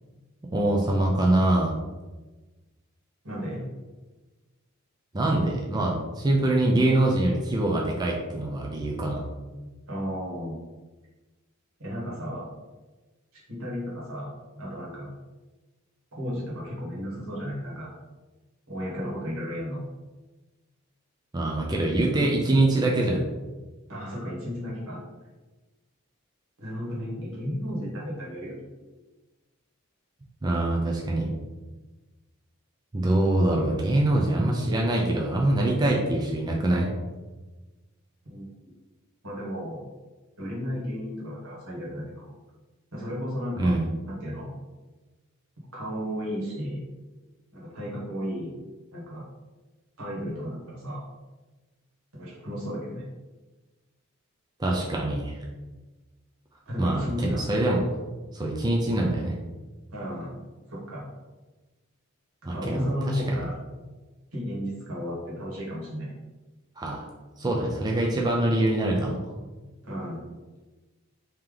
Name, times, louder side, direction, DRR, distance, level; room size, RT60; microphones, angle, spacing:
voice 1, 0.5-1.7 5.1-9.2 21.3-23.2 30.4-31.3 32.9-36.9 43.6-43.9 54.6-55.4 56.8-57.8 58.3-59.3 62.4-63.4 66.8-67.0 67.4-69.2, right 1 dB, 20° right, -2 dB, 0.4 m, -24 dB
voice 2, 3.2-3.6 9.9-10.6 11.8-12.4 13.5-14.3 14.6-15.1 16.2-17.9 18.7-19.8 23.9-25.0 26.6-28.6 38.2-38.4 39.2-39.8 40.4-42.3 42.9-43.7 44.1-44.5 45.7-46.9 47.5-48.5 48.9-49.2 50.0-51.0 52.1-53.0 56.7-57.4 59.9-60.3 60.7-61.0 62.5-63.6 64.3-66.1 69.8-70.3, equal, 85° right, -5 dB, 1.4 m, -33 dB
3.3 x 2.9 x 3.7 m, 1.2 s
head